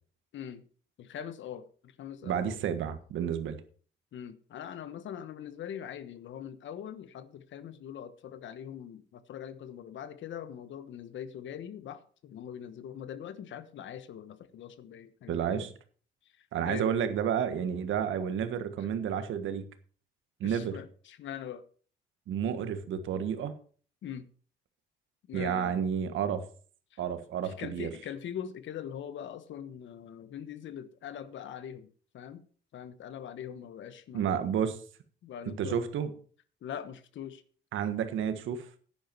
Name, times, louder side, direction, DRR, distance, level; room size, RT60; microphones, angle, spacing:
voice 1, 0.3-0.6 1.0-2.6 4.1-15.7 16.4-16.9 18.8-18.9 20.4-21.6 24.0-24.3 25.3-25.7 26.9-27.0 27.4-32.4 32.7-34.4 35.2-35.9 36.6-37.4, left 9 dB, 70° left, 1.1 m, -42 dB
voice 2, 2.2-3.6 15.3-15.7 16.5-19.6 20.4-20.8 22.3-23.5 25.3-26.4 27.0-27.9 34.1-34.8 35.6-36.1 37.7-38.7, right 8 dB, 80° right, 1.5 m, -31 dB
10.5 x 10.5 x 4.5 m
cardioid pair, 90°, 20 cm